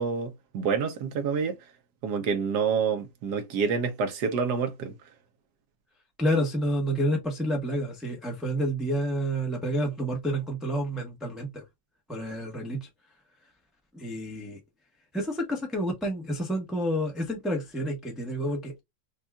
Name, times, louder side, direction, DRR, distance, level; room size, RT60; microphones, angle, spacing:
voice 1, 0.0-1.6 2.0-4.9, right 6 dB, 65° right, 1.1 m, -28 dB
voice 2, 6.2-11.6 12.1-12.9 13.9-14.6 15.1-18.8, equal, ahead, 0.5 m, -29 dB
5.2 x 2.3 x 2.2 m
omnidirectional pair, 2.0 m